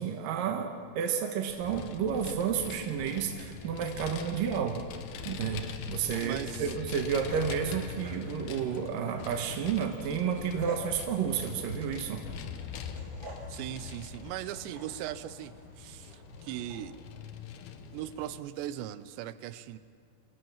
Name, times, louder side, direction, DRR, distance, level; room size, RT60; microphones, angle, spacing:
voice 1, 0.0-4.8 5.2-12.2, right 7 dB, 65° right, 4 dB, 2.4 m, -31 dB
Vehicle, 1.5-18.4, left 7 dB, 70° left, 2.9 m, -43 dB
sound 1, 5.9-17.0, right 1 dB, 20° right, 4.5 m, -50 dB
voice 2, 6.2-6.7 13.5-16.9 17.9-19.8, right 13 dB, 85° right, 14 dB, 3.0 m, -39 dB
sound 2, 7.3-8.6 9.0-9.5 10.1-10.3, left 1 dB, 20° left, 2.2 m, -54 dB
25.5 x 17.5 x 7.3 m, 2.5 s
omnidirectional pair, 5.0 m